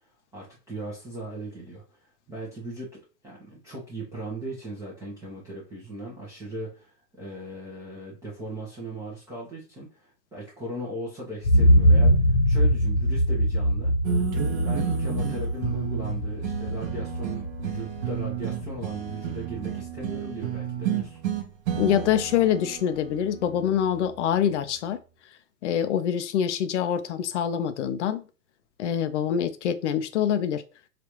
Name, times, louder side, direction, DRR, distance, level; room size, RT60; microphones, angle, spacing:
voice 1, 0.3-13.9 14.6-21.2, right 1 dB, 5° right, 0.6 m, -38 dB
sound 1, 11.4-19.3 19.7-19.8, equal, 80° left, 1.1 m, -23 dB
sound 2, 14.0-24.6, right 10 dB, 40° right, 0.8 m, -32 dB
voice 2, 21.8-25.0 25.6-28.2 28.8-30.6, left 9 dB, 50° left, 0.5 m, -25 dB
4.9 x 2.4 x 3.0 m
hypercardioid pair, 120°, 49 cm